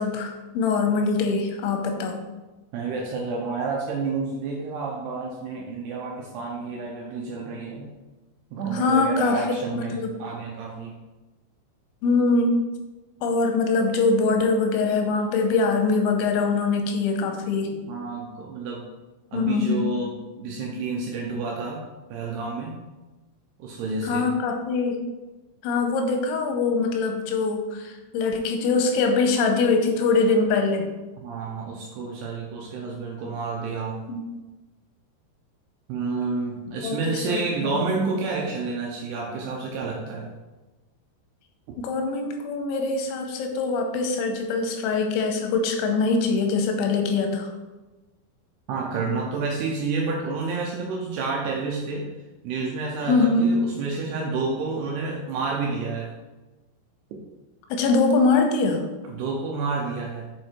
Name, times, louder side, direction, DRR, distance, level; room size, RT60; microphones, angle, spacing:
voice 1, 0.0-2.2 8.7-9.5 9.7-10.1 12.0-12.6 13.2-17.8 19.3-19.8 24.0-25.0 25.6-30.9 34.1-34.2 36.8-37.8 41.8-47.5 53.1-53.7 57.7-58.9, left 4 dB, 90° left, 4 dB, 3.1 m, -23 dB
voice 2, 2.7-7.9 8.5-11.0 17.9-18.9 19.3-21.8 22.1-22.7 23.6-24.3 31.2-34.0 35.9-40.3 48.7-52.1 52.4-56.1 57.1-57.2 59.1-60.3, right 4 dB, 80° right, -1 dB, 2.4 m, -29 dB
7.5 x 4.7 x 4.4 m, 1.2 s
omnidirectional pair, 5.5 m